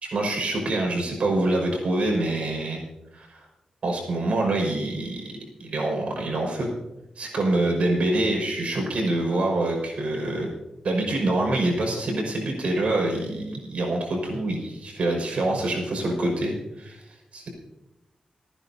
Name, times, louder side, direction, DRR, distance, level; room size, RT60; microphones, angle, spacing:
voice 1, 0.0-2.8 3.1-3.5 3.8-5.3 5.6-6.7 7.2-10.5 10.8-17.0 17.3-17.5, right 2 dB, 65° right, 0 dB, 5.4 m, -25 dB
29.0 x 10.0 x 2.8 m, 0.94 s
wide cardioid pair, 125°, 2 cm